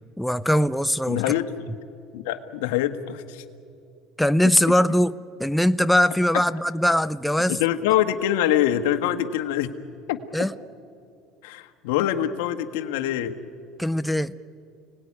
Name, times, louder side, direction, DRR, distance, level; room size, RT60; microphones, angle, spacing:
voice 1, 0.2-1.2 4.2-5.1 5.4-7.6 10.3-10.5 13.8-14.3, equal, 5° left, 14 dB, 0.6 m, -21 dB
voice 2, 1.1-1.5 2.1-3.4 4.4-4.5 7.5-9.7 10.1-10.2 11.4-13.3, left 11 dB, 85° left, 8 dB, 1.5 m, -24 dB
29.5 x 19.0 x 9.8 m, 2.5 s
supercardioid pair, 105°, 0 cm